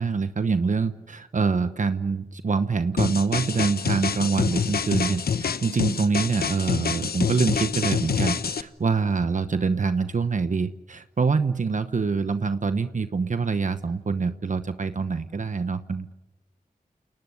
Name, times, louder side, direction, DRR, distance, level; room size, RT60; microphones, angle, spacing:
voice 1, 0.0-16.1, right 4 dB, 55° right, 10 dB, 1.0 m, -25 dB
sound 1, 3.0-8.6, left 6 dB, 90° left, 1.0 m, -26 dB
29.5 x 18.5 x 9.9 m, 0.99 s
wide cardioid pair, 100°, 15 cm